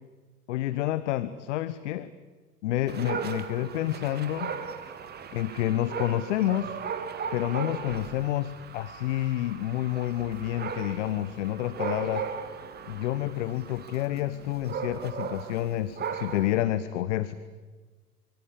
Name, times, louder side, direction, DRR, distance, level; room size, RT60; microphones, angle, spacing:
voice 1, 0.5-2.1 2.6-4.9 5.3-6.8 7.3-12.2 12.8-17.3, left 13 dB, 50° left, 15 dB, 1.2 m, -29 dB
Dog, 2.9-16.6, right 7 dB, 20° right, 2.0 m, -37 dB
sound 1, 9.8-15.4, right 5 dB, 65° right, 5.5 m, -58 dB
25.0 x 25.0 x 8.8 m, 1.4 s
figure-of-eight pair, 90°, 47 cm